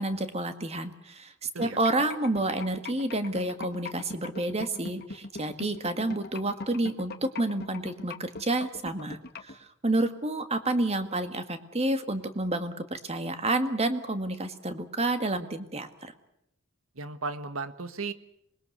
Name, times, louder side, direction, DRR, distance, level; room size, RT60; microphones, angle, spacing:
voice 1, 0.0-16.1, right 2 dB, 30° right, 9 dB, 1.9 m, -29 dB
sound 1, 1.6-9.5, left 3 dB, 50° left, 2.0 m, -39 dB
voice 2, 16.9-18.1, right 4 dB, 85° right, 11 dB, 1.6 m, -35 dB
26.5 x 21.0 x 6.7 m, 0.78 s
head